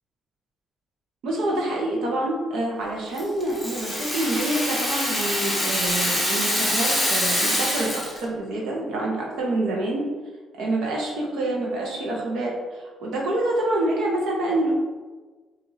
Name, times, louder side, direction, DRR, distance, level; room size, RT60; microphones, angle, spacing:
voice 1, 1.2-10.0 10.6-14.7, right 1 dB, 75° right, -3 dB, 1.0 m, -27 dB
Rattle (instrument), 3.2-8.2, left 1 dB, ahead, 0.9 m, -25 dB
6.9 x 2.7 x 2.7 m, 1.3 s
cardioid pair, 165°, 0 cm